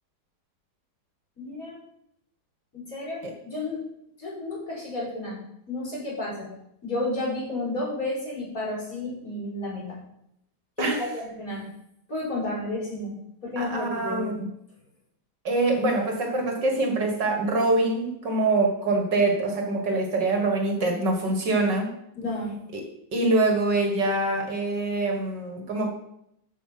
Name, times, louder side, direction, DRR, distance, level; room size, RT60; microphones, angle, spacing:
voice 1, 1.4-1.8 2.7-3.2 3.4-3.8 4.2-5.4 5.7-6.5 6.8-10.0 10.8-11.6 12.1-13.1 13.4-14.4 22.2-22.6, left 2 dB, 45° left, -5 dB, 5.2 m, -31 dB
voice 2, 13.6-14.5 15.4-21.9 22.7-22.8 23.1-25.9, right 2 dB, 60° right, 3 dB, 2.4 m, -24 dB
14.0 x 5.9 x 5.8 m, 0.77 s
omnidirectional pair, 2.2 m